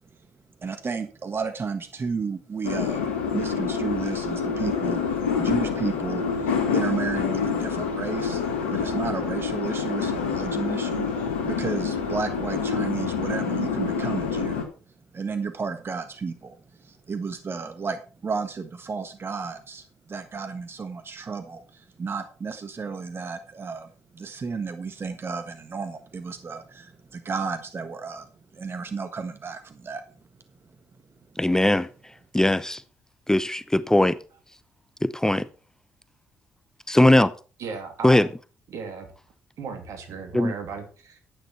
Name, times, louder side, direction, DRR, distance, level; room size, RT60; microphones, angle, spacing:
voice 1, 0.6-3.1 3.3-14.6 15.1-30.0, right 5 dB, 40° right, 1.5 m, -33 dB
sound 1, 2.6-14.6, left 6 dB, 90° left, 1.9 m, -27 dB
voice 2, 31.4-32.8 33.3-34.2 35.0-35.5 36.9-37.3 38.0-38.3 40.3-40.5, left 1 dB, 10° left, 0.8 m, -20 dB
voice 3, 37.6-38.3 38.7-39.1 39.6-41.2, right 5 dB, 65° right, 2.9 m, -36 dB
11.5 x 9.1 x 4.5 m
hypercardioid pair, 45°, 6 cm